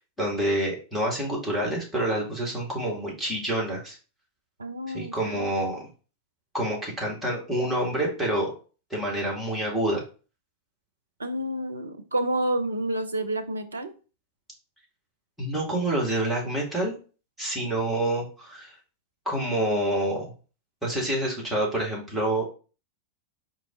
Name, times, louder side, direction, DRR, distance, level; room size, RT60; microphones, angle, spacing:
voice 1, 0.0-4.0 4.9-5.9 6.5-8.5 8.9-10.0 15.4-16.9 17.4-18.7 19.3-20.3 20.8-22.5, right 1 dB, ahead, -5 dB, 2.2 m, -27 dB
voice 2, 4.6-5.5 11.2-13.9, right 1 dB, 75° right, 9 dB, 0.5 m, -29 dB
4.6 x 2.8 x 3.8 m, 0.35 s
figure-of-eight pair, 90°, 0 cm